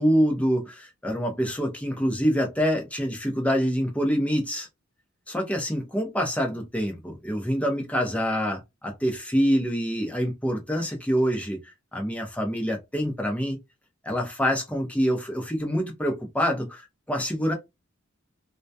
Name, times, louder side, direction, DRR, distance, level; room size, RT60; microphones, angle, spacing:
voice 1, 0.0-4.7 5.3-13.6 14.0-17.5, equal, 5° left, 0.7 m, -26 dB
2.2 x 2.2 x 2.6 m
head